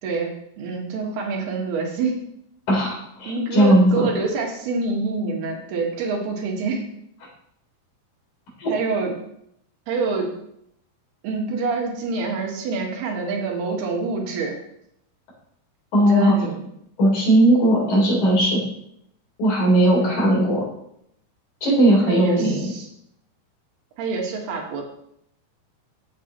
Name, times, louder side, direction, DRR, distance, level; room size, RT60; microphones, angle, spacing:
voice 1, 0.0-2.2 3.3-6.8 8.7-9.1 9.9-10.3 11.2-14.6 16.0-16.6 20.0-20.3 22.1-22.9 24.0-24.8, right 3 dB, 70° right, 0 dB, 3.7 m, -26 dB
voice 2, 2.7-4.1 8.6-8.7 15.9-16.3 17.0-18.6 19.4-20.6 21.6-22.7, right 1 dB, 45° left, -4 dB, 5.2 m, -18 dB
15.0 x 7.5 x 3.1 m, 0.74 s
omnidirectional pair, 4.8 m